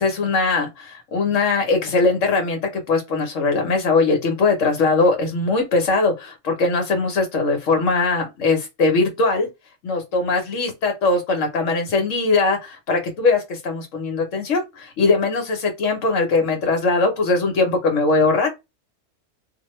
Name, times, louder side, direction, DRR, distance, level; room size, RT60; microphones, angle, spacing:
voice 1, 0.0-2.6 2.9-9.5 9.8-18.5, left 3 dB, 75° left, 1.3 m, -20 dB
2.8 x 2.0 x 3.0 m
omnidirectional pair, 1.3 m